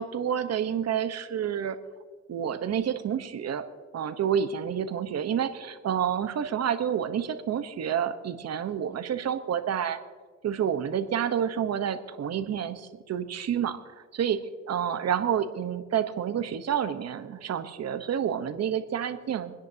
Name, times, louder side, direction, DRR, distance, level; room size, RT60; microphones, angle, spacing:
voice 1, 0.0-1.8 2.3-3.6 3.9-10.0 10.4-19.5, right 8 dB, 55° right, 9 dB, 1.1 m, -29 dB
28.0 x 10.5 x 2.9 m, 1.5 s
cardioid pair, 90°, 30 cm